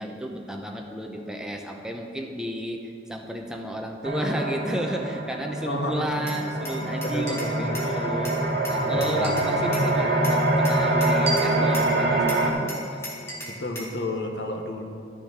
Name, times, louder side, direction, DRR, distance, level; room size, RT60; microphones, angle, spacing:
voice 1, 0.0-8.4 8.6-13.0, equal, 5° right, 2 dB, 0.7 m, -32 dB
sound 1, 4.0-12.5, right 2 dB, 60° right, 1.7 m, -25 dB
voice 2, 5.7-6.4 6.8-8.3 8.8-9.5 13.5-14.8, left 1 dB, 75° left, 3 dB, 1.2 m, -32 dB
Glass, 6.3-7.9 8.2-9.9 10.2-11.9 12.3-14.0, equal, 15° left, 2.2 m, -35 dB
13.0 x 6.8 x 5.1 m, 2.9 s
head